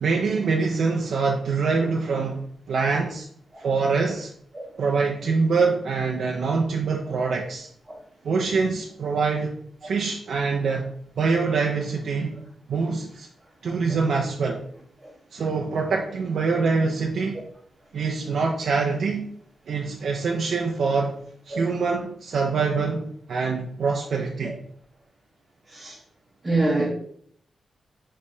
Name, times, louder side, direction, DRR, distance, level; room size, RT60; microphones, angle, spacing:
voice 1, 0.0-2.4 2.7-3.3 3.6-4.3 4.8-7.7 8.2-9.5 9.8-10.9 11.2-12.4 12.7-13.3 13.6-14.6 15.3-17.4 17.9-19.3 19.7-21.1 21.5-24.6, right 4 dB, 65° right, 0.5 m, -24 dB
voice 2, 26.4-26.9, right 2 dB, 25° right, 0.9 m, -25 dB
5.3 x 3.2 x 2.6 m
wide cardioid pair, 130°, 0 cm